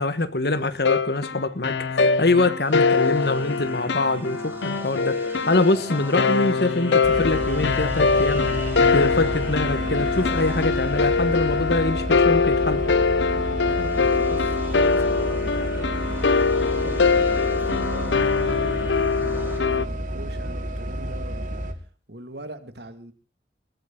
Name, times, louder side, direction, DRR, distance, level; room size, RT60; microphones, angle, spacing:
voice 1, 0.0-5.2 5.5-8.4 8.9-12.8, left 2 dB, 60° left, 1.4 m, -24 dB
sound 1, 0.8-19.8, left 4 dB, 80° left, 0.7 m, -23 dB
sound 2, 2.5-12.1 13.6-19.6, right 2 dB, 10° right, 3.2 m, -41 dB
sound 3, 7.0-21.7, right 1 dB, 45° right, 2.1 m, -31 dB
voice 2, 13.7-21.5 22.1-23.1, right 1 dB, 65° right, 2.3 m, -41 dB
21.0 x 14.0 x 3.9 m
head